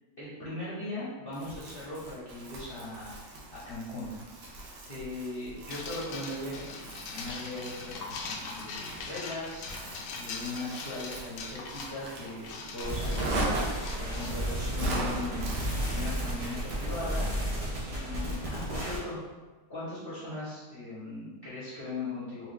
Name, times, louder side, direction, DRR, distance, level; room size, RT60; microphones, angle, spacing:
voice 1, 0.2-3.1 3.5-4.1 4.8-9.7 10.1-13.5 14.0-15.4 15.9-17.3 17.9-19.2 19.7-22.5, left 2 dB, 40° left, -10 dB, 0.9 m, -39 dB
Crumpling crinkling, 1.3-17.1, right 2 dB, 70° right, 1.4 m, -40 dB
sound 1, 5.7-15.3, left 4 dB, 75° left, 1.2 m, -42 dB
sound 2, 12.8-19.0, equal, 45° right, 0.4 m, -33 dB
3.6 x 3.0 x 3.3 m, 1.2 s
omnidirectional pair, 1.9 m